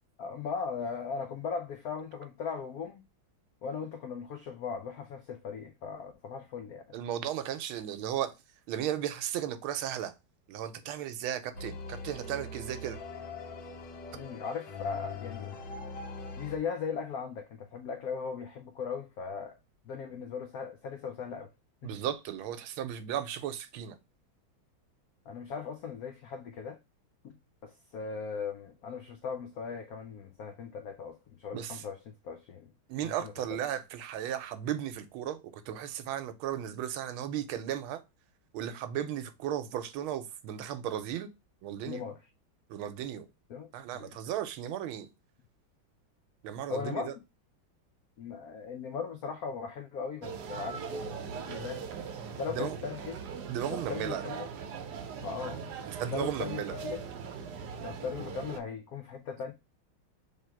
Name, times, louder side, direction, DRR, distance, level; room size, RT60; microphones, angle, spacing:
voice 1, 0.2-3.0 3.6-7.1 14.1-15.5 16.4-19.6 19.9-21.5 21.8-22.0 25.3-26.8 27.2-27.3 27.6-32.7 33.0-33.6 41.9-42.2 43.5-44.2 46.7-47.1 48.2-51.1 51.5-51.8 52.4-53.2 53.7-54.5 55.1-55.6 56.1-57.0 57.7-59.5, left 6 dB, 85° left, 0.8 m, -38 dB
voice 2, 6.9-8.3 8.7-10.1 10.5-13.0 21.8-24.0 31.5-31.8 32.9-38.0 38.5-41.3 41.6-42.0 42.7-43.3 43.7-45.1 46.4-47.1 52.5-52.7 53.5-54.2 55.9-56.7, right 10 dB, 85° right, 1.5 m, -35 dB
sound 1, 11.5-16.6, left 3 dB, 65° left, 1.5 m, -42 dB
sound 2, 50.2-58.6, right 6 dB, 65° right, 1.1 m, -40 dB
3.5 x 3.4 x 4.4 m
omnidirectional pair, 2.3 m